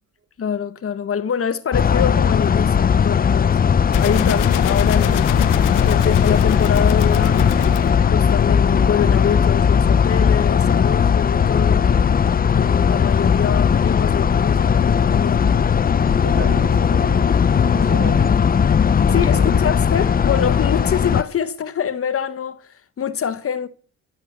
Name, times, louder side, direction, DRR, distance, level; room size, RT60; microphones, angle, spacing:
voice 1, 0.4-3.6 4.0-5.4 5.8-7.5 8.1-11.9 12.5-15.5 19.1-23.7, left 7 dB, 50° left, 1.4 m, -25 dB
sound 1, 1.7-21.2, left 7 dB, 30° left, 0.6 m, -17 dB
sound 2, 3.9-8.8, left 14 dB, 90° left, 0.9 m, -26 dB
voice 2, 16.1-18.4 19.0-19.6, right 5 dB, 55° right, 6.3 m, -34 dB
14.0 x 12.5 x 6.8 m
cardioid pair, 90°, 30 cm